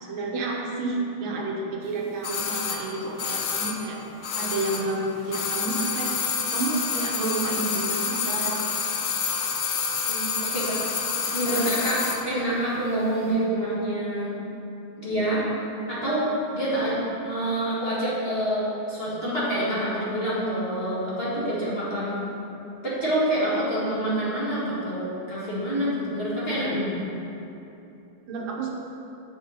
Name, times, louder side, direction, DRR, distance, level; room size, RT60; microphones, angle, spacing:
voice 1, 0.0-4.0 4.4-6.1 6.5-8.6 11.4-11.5 28.3-28.7, right 2 dB, 80° right, -1 dB, 1.7 m, -30 dB
sound 1, 2.2-5.0 5.2-12.3 12.5-12.6, left 6 dB, 70° left, 0.8 m, -28 dB
voice 2, 10.0-11.0 11.3-14.3 15.0-15.4 15.9-16.3 16.5-17.0 17.2-22.2 22.8-27.0, right 1 dB, 30° left, -9 dB, 2.0 m, -27 dB
7.6 x 7.1 x 4.0 m, 2.8 s
omnidirectional pair, 2.2 m